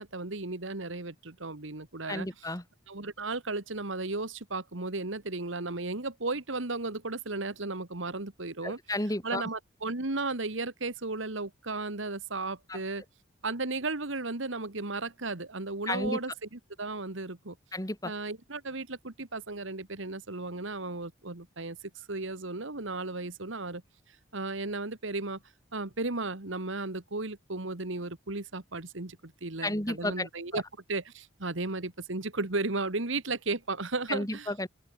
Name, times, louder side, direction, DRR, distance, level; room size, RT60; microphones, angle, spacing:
voice 1, 0.0-2.5 2.9-8.8 9.2-13.0 13.4-17.6 18.0-21.8 22.1-23.8 24.3-25.4 25.7-30.6 30.9-34.5, right 3 dB, 70° right, 1.9 m, -35 dB
voice 2, 2.1-2.6 8.6-9.4 12.7-12.8 15.9-16.2 17.7-18.1 29.6-30.3 30.5-30.6 34.1-34.7, left 1 dB, 15° left, 3.3 m, -32 dB
open air
head